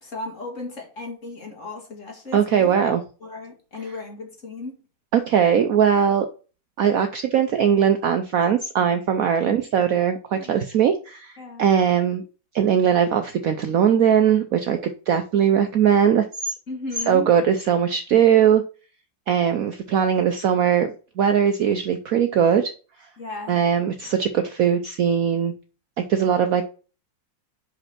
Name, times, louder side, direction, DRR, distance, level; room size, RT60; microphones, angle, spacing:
voice 1, 0.0-4.8 9.4-9.8 10.3-10.5 11.4-11.7 16.7-17.3 23.2-23.6, left 2 dB, 40° left, 2.2 m, -36 dB
voice 2, 2.3-3.0 5.1-6.3 6.8-12.2 12.5-16.5 17.1-18.6 19.3-22.7 23.5-25.5 26.1-26.6, right 8 dB, 65° right, 0.9 m, -20 dB
5.4 x 5.3 x 5.8 m
omnidirectional pair, 2.0 m